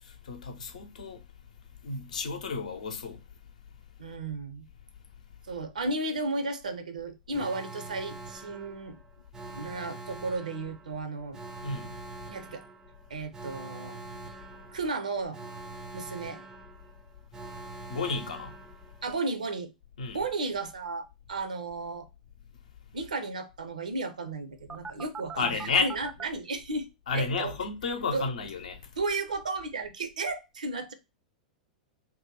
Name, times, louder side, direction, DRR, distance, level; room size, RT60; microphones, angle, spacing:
voice 1, 0.0-1.2 1.8-3.2 11.6-12.0 17.9-18.6 20.0-20.2 25.4-25.9 27.1-28.9, left 4 dB, 65° left, 0.7 m, -32 dB
voice 2, 4.0-4.7 5.5-9.0 9.5-11.4 12.3-12.6 13.1-15.5 15.9-16.4 19.0-19.7 20.1-22.1 22.9-26.9 27.1-27.5 28.1-28.3 29.0-30.9, right 3 dB, 70° right, 0.6 m, -34 dB
Alarm, 7.3-19.2 24.7-26.3, right 3 dB, 15° right, 0.4 m, -44 dB
2.8 x 2.1 x 3.7 m
figure-of-eight pair, 95°, 4 cm